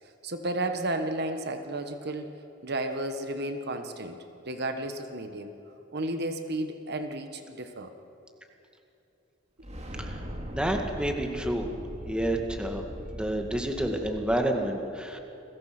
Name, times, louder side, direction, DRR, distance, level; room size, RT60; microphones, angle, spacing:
voice 1, 0.2-2.3 2.6-4.2 4.5-5.5 5.9-7.9 9.8-10.1, right 1 dB, 55° right, 7 dB, 1.4 m, -33 dB
sound 1, 9.6-14.4, equal, 35° right, 2.7 m, -39 dB
voice 2, 10.5-11.7 12.1-12.8 13.1-15.2, right 1 dB, 5° right, 3 dB, 2.1 m, -29 dB
30.0 x 21.5 x 6.1 m, 2.9 s
head